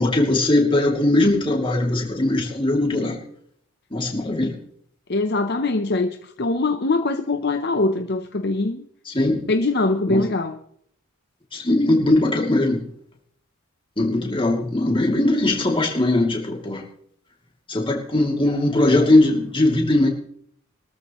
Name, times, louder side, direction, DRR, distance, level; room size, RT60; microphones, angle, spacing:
voice 1, 0.0-3.2 3.9-4.5 9.0-9.4 10.1-10.2 11.5-12.8 14.0-16.8 17.7-20.1, left 2 dB, 25° left, 0 dB, 2.7 m, -20 dB
voice 2, 5.1-8.8 9.5-10.6, left 2 dB, 45° left, 7 dB, 0.7 m, -22 dB
22.0 x 13.5 x 3.1 m, 0.66 s
head